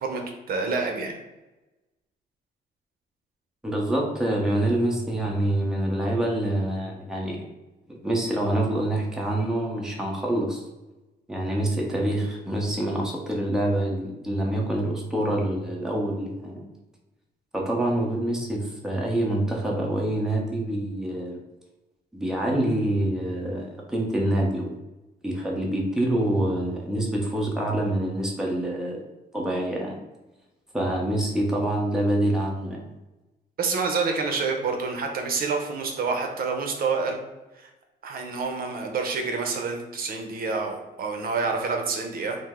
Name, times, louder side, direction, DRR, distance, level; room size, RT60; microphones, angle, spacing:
voice 1, 0.5-1.1 33.6-37.2 37.6-37.7 38.0-42.4, right 4 dB, 60° right, 3 dB, 0.7 m, -28 dB
voice 2, 3.6-7.4 7.9-10.6 11.3-16.7 17.5-21.4 22.1-24.7 25.2-29.0 29.3-30.0 30.7-32.9, right 1 dB, 5° right, -2 dB, 0.8 m, -26 dB
5.2 x 2.0 x 3.6 m, 1.1 s
cardioid pair, 135°, 17 cm